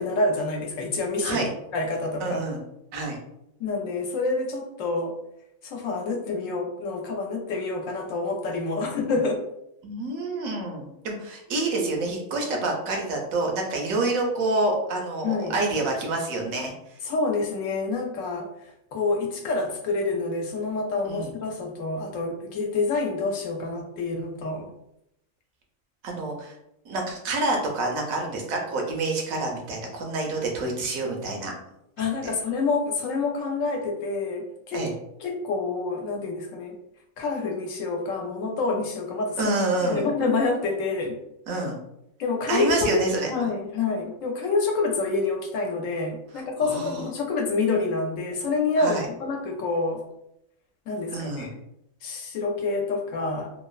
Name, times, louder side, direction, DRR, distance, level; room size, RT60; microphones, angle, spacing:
voice 1, 0.0-2.4 3.6-5.2 5.6-9.4 15.2-15.5 17.0-24.7 32.0-34.9 35.2-36.8 37.2-41.2 42.2-50.0 50.9-51.5 52.0-53.5, left 3 dB, 75° left, 1 dB, 0.9 m, -27 dB
voice 2, 2.2-2.6 2.9-3.2 9.8-16.7 21.0-21.3 26.0-26.5 26.8-31.5 34.7-34.9 39.4-40.1 41.5-41.8 42.5-43.3 46.6-47.0 48.8-49.1 51.1-51.5, right 2 dB, 85° right, 1 dB, 1.1 m, -27 dB
2.9 x 2.0 x 2.3 m, 0.81 s
omnidirectional pair, 1.4 m